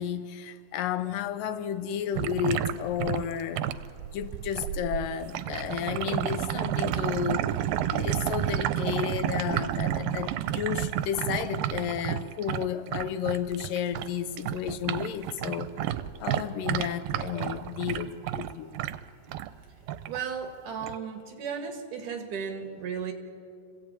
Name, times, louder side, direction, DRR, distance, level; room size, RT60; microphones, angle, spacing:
voice 1, 0.0-3.6 4.1-7.5 7.9-15.7 16.2-18.7, left 9 dB, 80° left, 2.5 m, -32 dB
sound 1, 2.1-14.1 14.4-19.5 19.9-20.2 20.8-21.0, right 11 dB, 90° right, 2.4 m, -31 dB
voice 2, 20.0-23.1, right 6 dB, 65° right, 3.3 m, -35 dB
26.0 x 16.5 x 8.8 m
omnidirectional pair, 3.9 m